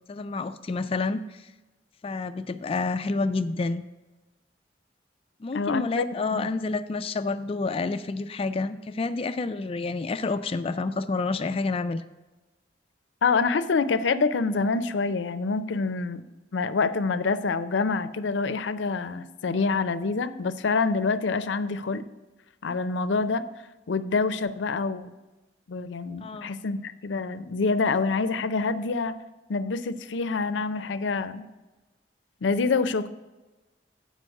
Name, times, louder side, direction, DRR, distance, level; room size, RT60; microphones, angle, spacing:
voice 1, 0.1-1.2 2.0-3.8 5.4-12.0 26.2-26.5, left 3 dB, 30° left, 10 dB, 0.3 m, -29 dB
voice 2, 5.5-6.5 13.2-16.2 16.5-22.0 22.6-23.4 23.9-25.1 25.7-29.2 29.5-31.5 32.4-33.1, left 4 dB, 90° left, 12 dB, 0.5 m, -26 dB
7.7 x 5.2 x 6.3 m, 1.1 s
head